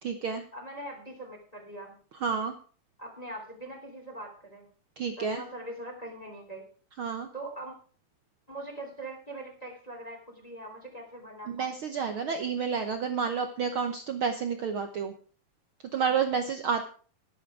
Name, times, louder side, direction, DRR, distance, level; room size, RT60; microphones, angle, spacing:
voice 1, 0.0-0.4 2.2-2.5 5.0-5.4 7.0-7.3 11.5-15.1 15.9-16.8, right 6 dB, 80° right, 7 dB, 1.2 m, -30 dB
voice 2, 0.5-1.9 3.0-4.7 5.2-6.7 7.3-7.7 8.5-11.7, right 1 dB, 10° left, 1 dB, 2.8 m, -42 dB
12.0 x 11.5 x 4.8 m, 0.42 s
omnidirectional pair, 3.7 m